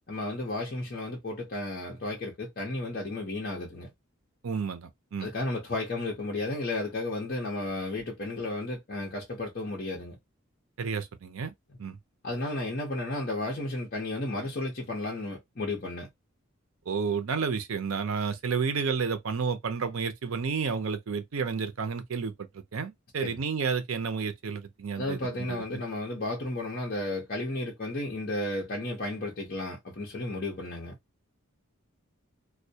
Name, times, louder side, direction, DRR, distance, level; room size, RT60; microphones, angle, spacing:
voice 1, 0.1-3.9 5.2-10.2 12.2-16.1 23.2-23.4 24.9-30.9, left 2 dB, 45° left, 0.7 m, -33 dB
voice 2, 4.4-5.3 10.8-11.5 11.8-12.0 16.9-25.8, right 5 dB, 75° right, 0.5 m, -31 dB
2.2 x 2.1 x 2.7 m
head